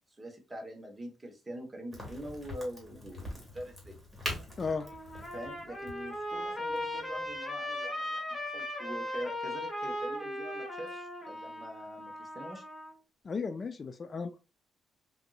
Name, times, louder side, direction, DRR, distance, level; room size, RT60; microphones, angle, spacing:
voice 1, 0.1-4.0 5.3-12.6, right 1 dB, 20° right, 3 dB, 1.0 m, -44 dB
Crack, 1.9-7.4, left 1 dB, 5° right, 1.8 m, -43 dB
Trumpet, 4.5-12.9, left 1 dB, 15° left, 1.0 m, -38 dB
voice 2, 13.2-14.4, left 5 dB, 40° left, 10 dB, 0.3 m, -35 dB
3.6 x 2.7 x 2.3 m, 0.30 s
cardioid pair, 90°, 0 cm